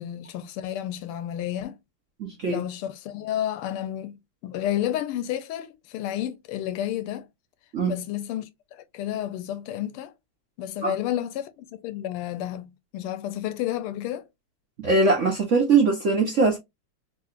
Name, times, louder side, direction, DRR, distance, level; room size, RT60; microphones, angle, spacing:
voice 1, 0.0-1.8 2.5-7.3 7.9-10.1 10.6-14.3, left 11 dB, 85° left, 1.5 m, -31 dB
voice 2, 2.2-2.6 7.7-8.0 10.8-10.9 14.8-16.6, right 3 dB, 60° right, 0.8 m, -21 dB
3.7 x 3.1 x 2.4 m
omnidirectional pair, 2.4 m